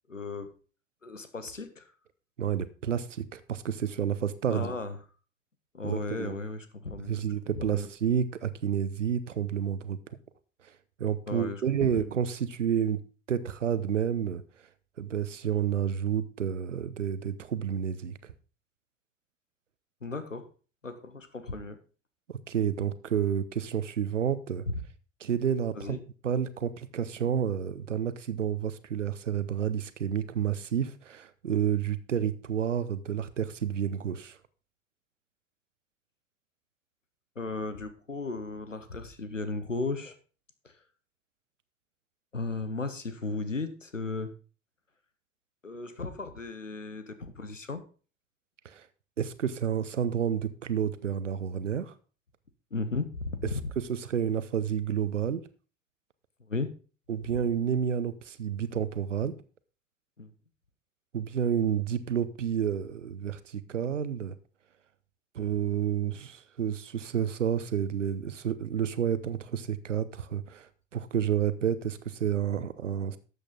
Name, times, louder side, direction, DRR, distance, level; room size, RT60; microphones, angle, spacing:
voice 1, 0.1-0.5 1.0-1.9 4.5-5.0 5.7-7.2 7.5-7.9 11.3-12.1 20.0-20.5 20.8-21.8 25.8-26.0 37.4-40.2 40.6-40.7 42.3-44.3 45.6-47.8 52.7-53.7 56.5-56.7 60.2-60.3, left 3 dB, 90° left, 1.0 m, -35 dB
voice 2, 2.4-4.7 5.8-6.3 7.1-10.0 11.0-13.0 13.3-14.4 15.0-18.3 22.5-24.6 25.2-26.0 26.2-34.4 48.6-48.9 49.2-51.9 53.8-55.4 57.1-59.4 61.1-64.3 65.3-73.2, right 8 dB, 80° right, 0.8 m, -30 dB
12.5 x 8.1 x 3.8 m
figure-of-eight pair, 65°, 37 cm